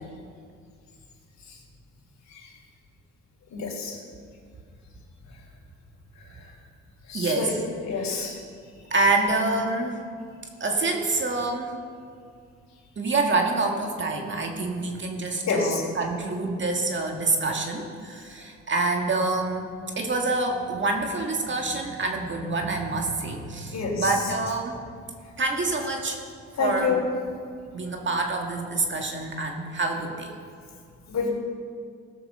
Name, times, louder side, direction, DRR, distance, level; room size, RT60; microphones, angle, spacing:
voice 1, 3.5-3.9 7.1-8.3 15.5-15.8 23.7-24.2 26.6-27.1 31.1-31.3, left 5 dB, 60° left, -1 dB, 3.4 m, -27 dB
voice 2, 7.1-7.6 8.0-8.3 8.9-10.0 10.6-11.7 13.0-24.8 25.4-26.2 26.6-27.0 27.7-30.3, right 3 dB, 40° right, 2 dB, 1.8 m, -27 dB
17.0 x 5.9 x 6.6 m, 2.2 s
cardioid pair, 90°, 30 cm